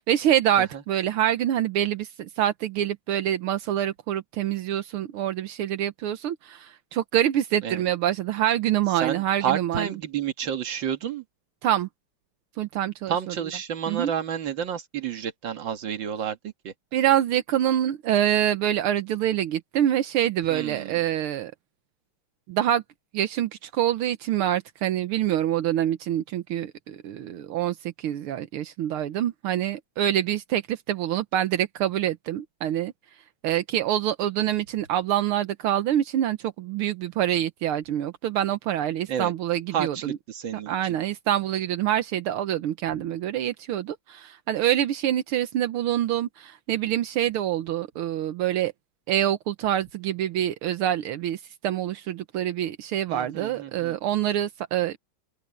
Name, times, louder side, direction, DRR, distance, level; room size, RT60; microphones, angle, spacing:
voice 1, 0.0-9.9 11.6-11.9 12.6-13.1 13.9-14.1 16.9-21.5 22.5-22.8 23.1-32.9 33.4-40.2 40.7-48.7 49.1-55.0, right 11 dB, 80° right, 1.8 m, -26 dB
voice 2, 9.0-11.2 13.1-16.7 20.5-21.0 39.1-39.3 39.7-40.7 42.9-43.0 53.1-54.0, right 9 dB, 60° right, 2.3 m, -30 dB
open air
omnidirectional pair, 2.4 m